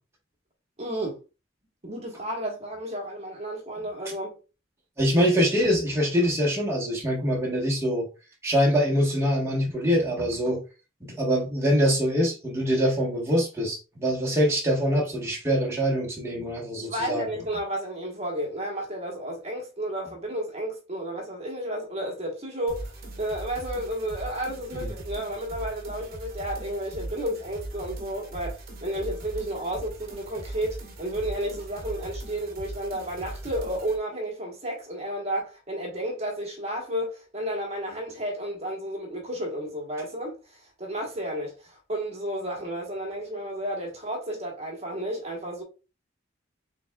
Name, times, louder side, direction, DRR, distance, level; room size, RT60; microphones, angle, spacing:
voice 1, 0.8-1.2 1.8-4.4 16.8-22.9 23.2-45.6, right 1 dB, 35° right, 1.2 m, -32 dB
voice 2, 5.0-8.1 8.4-10.6 11.0-17.4 24.7-24.9, equal, 15° right, 1.2 m, -24 dB
sound 1, 22.7-34.0, right 1 dB, 50° right, 1.0 m, -39 dB
5.1 x 3.5 x 2.3 m
head